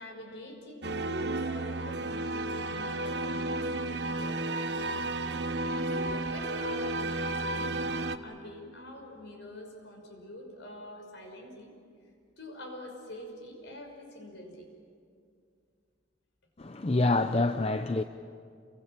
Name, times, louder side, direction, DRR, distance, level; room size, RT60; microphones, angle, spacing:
voice 1, 0.0-5.2 5.9-11.7 12.4-14.7, left 1 dB, 60° left, 5.9 m, -45 dB
sound 1, 0.8-8.2, right 2 dB, 55° right, 1.1 m, -32 dB
voice 2, 16.6-18.0, left 2 dB, 30° left, 0.6 m, -26 dB
29.5 x 23.0 x 7.5 m
head